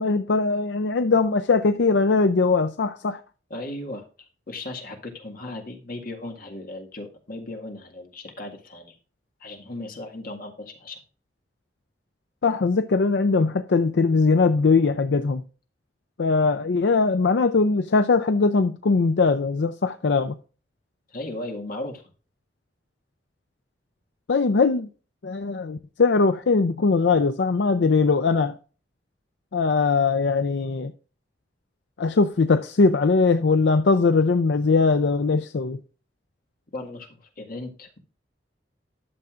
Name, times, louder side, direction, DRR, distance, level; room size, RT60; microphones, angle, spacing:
voice 1, 0.0-3.2 12.4-15.4 16.2-20.3 24.3-24.9 25.2-28.5 29.5-30.9 32.0-35.8, left 4 dB, 75° left, 0.5 m, -21 dB
voice 2, 3.5-4.1 4.5-9.0 9.4-11.0 21.1-22.0 36.7-38.0, left 2 dB, 55° left, 1.8 m, -36 dB
12.0 x 6.9 x 2.5 m
head